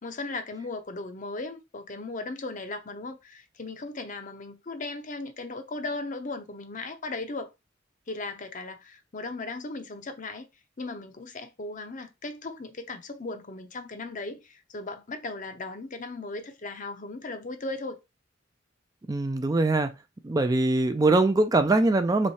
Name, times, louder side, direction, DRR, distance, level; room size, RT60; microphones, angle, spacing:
voice 1, 0.0-7.5 8.1-10.5 10.8-18.0, left 3 dB, 40° left, 0.7 m, -37 dB
voice 2, 19.1-19.9 20.2-22.3, right 2 dB, 20° right, 0.4 m, -22 dB
3.5 x 3.2 x 4.1 m
head